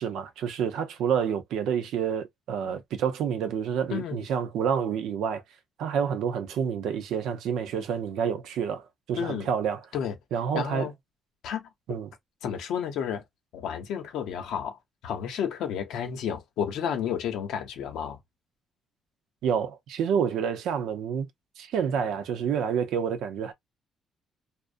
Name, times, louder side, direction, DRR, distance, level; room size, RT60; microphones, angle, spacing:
voice 1, 0.0-5.4 5.8-9.8 10.3-10.9 11.9-12.1 19.4-21.3 21.6-23.5, right 7 dB, 85° right, 0.5 m, -28 dB
voice 2, 3.9-4.3 9.2-9.5 9.9-10.2 10.5-10.9 11.4-12.0 12.4-13.2 13.5-18.2, left 8 dB, 85° left, 0.7 m, -31 dB
2.5 x 2.0 x 2.5 m
cardioid pair, 90°, 0 cm